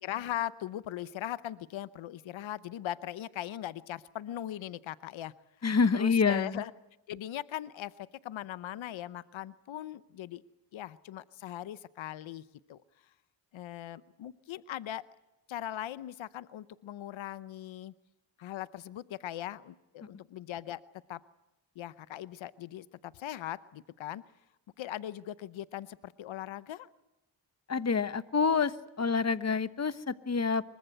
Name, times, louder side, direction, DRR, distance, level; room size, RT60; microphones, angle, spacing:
voice 1, 0.0-5.3 5.9-6.7 7.1-10.4 10.7-12.4 12.7-12.8 13.5-15.0 15.5-17.9 18.4-20.8 21.1-21.2 21.8-24.2 24.8-26.9, left 12 dB, 90° left, 16 dB, 0.8 m, -39 dB
voice 2, 5.6-6.6 27.7-30.6, left 5 dB, 35° left, 14 dB, 1.2 m, -27 dB
25.0 x 23.0 x 7.9 m, 0.97 s
cardioid pair, 70°, 45 cm